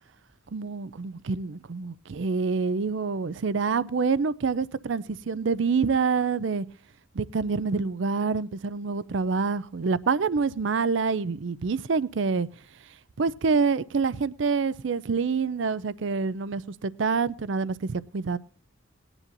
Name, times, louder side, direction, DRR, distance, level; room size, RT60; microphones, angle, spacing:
voice 1, 0.5-6.7 7.1-12.5 13.2-18.4, right 4 dB, 65° right, 0.5 m, -26 dB
19.5 x 9.9 x 2.6 m
head